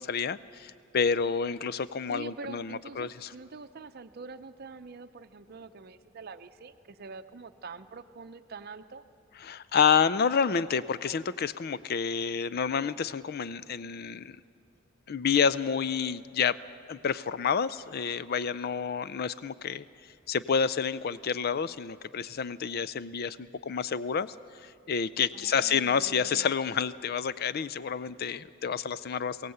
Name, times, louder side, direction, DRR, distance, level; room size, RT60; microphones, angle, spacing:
voice 1, 0.0-3.3 9.4-14.4 15.1-16.6 16.9-19.8 20.3-24.3 24.6-29.5, left 6 dB, 50° left, 17 dB, 0.4 m, -29 dB
voice 2, 2.1-9.0 25.3-26.5, right 4 dB, 50° right, 10 dB, 0.6 m, -45 dB
22.0 x 16.5 x 7.9 m, 2.6 s
head